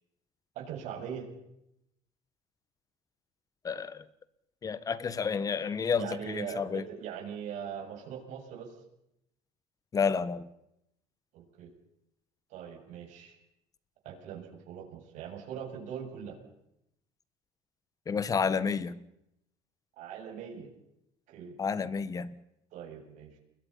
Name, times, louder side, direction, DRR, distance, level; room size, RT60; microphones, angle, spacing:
voice 1, 0.5-1.3 6.0-8.7 11.3-11.7 12.5-13.4 14.0-16.4 20.0-20.7 21.3-21.6 22.7-23.4, right 8 dB, 65° right, 2 dB, 7.7 m, -41 dB
voice 2, 3.6-4.0 4.6-6.8 9.9-10.4 18.1-19.0 21.6-22.3, left 6 dB, 25° left, 16 dB, 1.4 m, -30 dB
30.0 x 21.5 x 5.7 m, 0.81 s
cardioid pair, 130°, 13 cm